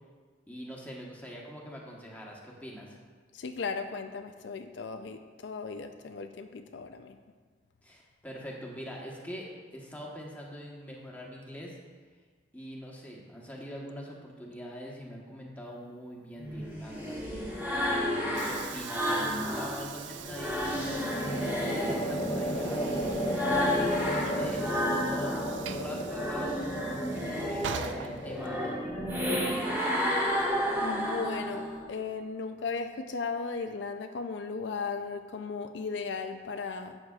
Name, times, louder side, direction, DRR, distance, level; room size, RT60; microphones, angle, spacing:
voice 1, 0.5-3.0 7.8-11.8 12.5-17.4 17.8-29.7, equal, 10° left, -3 dB, 1.2 m, -43 dB
voice 2, 3.3-7.2 30.8-37.0, left 4 dB, 75° left, 7 dB, 0.4 m, -36 dB
sound 1, 16.4-19.8 20.2-25.6 25.9-31.8, equal, 10° right, 1.6 m, -32 dB
sound 2, 17.3-17.9 20.5-31.8, equal, 25° left, 0.8 m, -35 dB
Train / Sliding door, 17.4-28.8, right 7 dB, 75° right, 0.4 m, -43 dB
11.5 x 7.8 x 2.4 m, 1.5 s
head